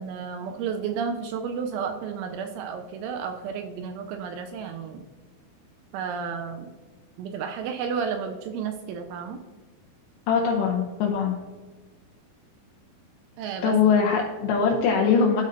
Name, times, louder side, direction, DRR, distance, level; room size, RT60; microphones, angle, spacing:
voice 1, 0.0-5.0 5.9-6.7 7.2-9.4 13.4-13.8, right 6 dB, 85° right, 5 dB, 2.8 m, -32 dB
voice 2, 10.3-11.4 13.6-15.4, left 6 dB, 85° left, 0 dB, 2.5 m, -22 dB
13.0 x 5.3 x 2.6 m, 1.4 s
omnidirectional pair, 5.8 m